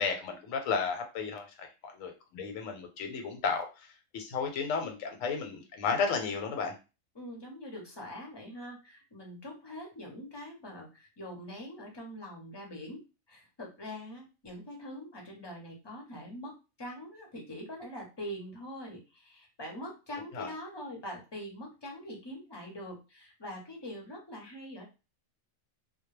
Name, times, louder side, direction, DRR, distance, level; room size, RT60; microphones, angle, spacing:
voice 1, 0.0-3.7 4.1-6.7 20.3-20.5, left 5 dB, 85° left, 4 dB, 1.0 m, -33 dB
voice 2, 7.1-13.0 13.3-24.8, equal, 30° left, 0 dB, 0.5 m, -43 dB
2.2 x 2.0 x 3.1 m, 0.30 s
omnidirectional pair, 1.4 m